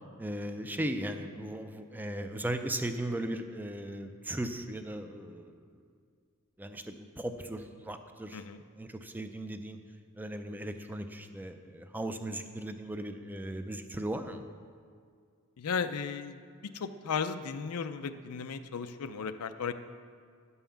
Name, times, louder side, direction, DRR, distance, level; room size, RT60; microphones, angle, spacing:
voice 1, 0.2-5.6 6.6-8.4 8.7-9.8 10.2-14.4, right 1 dB, 10° right, 7 dB, 0.4 m, -37 dB
voice 2, 15.6-16.4 16.7-19.7, left 6 dB, 90° left, 10 dB, 0.5 m, -35 dB
10.0 x 5.5 x 7.1 m, 2.1 s
head